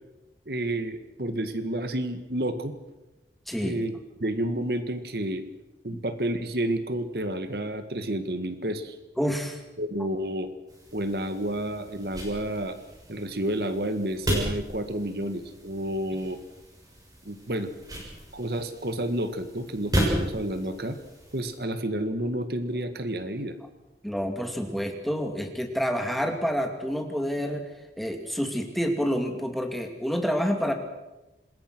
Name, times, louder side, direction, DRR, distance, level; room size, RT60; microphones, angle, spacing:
voice 1, 0.5-2.7 3.6-3.9 4.2-5.4 5.8-9.0 9.8-10.5 10.9-12.8 13.1-16.4 17.2-17.7 18.3-21.0 21.3-23.5, right 1 dB, 60° right, 10 dB, 1.7 m, -30 dB
voice 2, 3.5-3.8 5.9-6.0 9.2-9.6 24.0-27.7 28.0-30.7, equal, ahead, 4 dB, 2.4 m, -28 dB
sound 1, 10.7-21.6, equal, 20° right, 6.9 m, -34 dB
26.5 x 21.0 x 6.1 m, 1.0 s
head